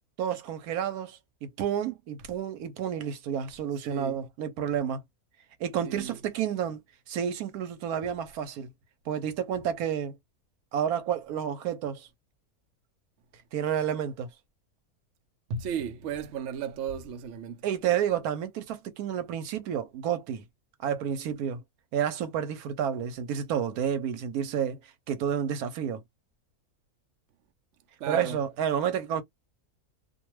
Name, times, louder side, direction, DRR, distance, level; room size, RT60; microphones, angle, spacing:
voice 1, 0.2-5.0 5.6-6.8 7.1-8.7 9.1-10.2 10.7-12.1 13.5-14.3 17.6-20.4 20.8-21.6 21.9-24.8 25.1-26.0 28.1-29.2, right 9 dB, 90° right, 1.2 m, -30 dB
voice 2, 3.9-4.2 5.8-6.2 15.5-17.6 28.0-28.4, right 7 dB, 65° right, 0.8 m, -34 dB
2.5 x 2.3 x 3.0 m
omnidirectional pair, 1.5 m